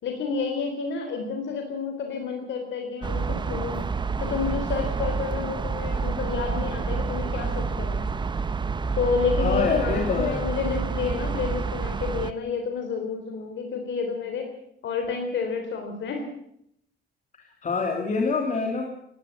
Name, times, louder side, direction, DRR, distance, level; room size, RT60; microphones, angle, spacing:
voice 1, 0.0-3.8 4.2-8.1 9.0-14.5 14.8-16.3, left 5 dB, 65° left, 4 dB, 3.7 m, -29 dB
sound 1, 3.0-12.3, right 5 dB, 20° right, 0.8 m, -28 dB
voice 2, 9.4-10.4 17.3-18.9, left 4 dB, 35° left, 1 dB, 3.2 m, -26 dB
19.5 x 16.5 x 8.3 m, 0.72 s
cardioid pair, 145°, 21 cm